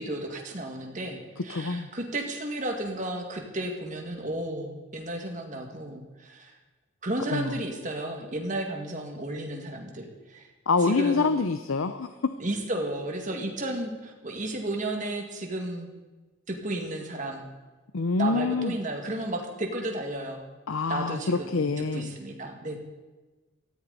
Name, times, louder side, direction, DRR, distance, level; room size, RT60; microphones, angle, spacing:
voice 1, 0.0-6.5 7.0-10.5 10.8-11.4 12.4-15.9 16.5-17.5 18.2-20.4 20.9-22.8, right 1 dB, 40° right, 2 dB, 2.1 m, -33 dB
voice 2, 1.5-1.9 7.3-7.5 10.7-12.3 17.9-18.7 20.7-22.2, left 4 dB, 80° left, 10 dB, 0.6 m, -26 dB
17.5 x 14.0 x 4.2 m, 1.2 s
head